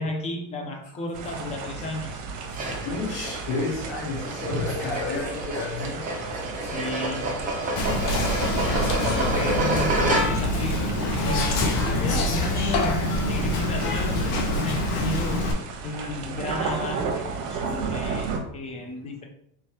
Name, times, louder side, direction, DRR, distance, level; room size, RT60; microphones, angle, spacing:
voice 1, 0.0-2.2 6.6-7.3 9.1-15.5 15.8-19.3, left 2 dB, 15° left, 3 dB, 0.3 m, -33 dB
sound 1, 1.1-18.4, right 4 dB, 65° right, 1.0 m, -35 dB
sound 2, 2.5-10.6, right 1 dB, 15° right, 0.7 m, -29 dB
voice 2, 2.7-6.2 6.7-7.1 8.2-8.5 8.7-9.0 9.4-9.6, left 3 dB, 70° left, -4 dB, 1.3 m, -32 dB
Whispering, 7.8-15.5, left 1 dB, 50° left, 1.0 m, -25 dB
4.4 x 3.2 x 2.8 m, 0.69 s
supercardioid pair, 135°, 49 cm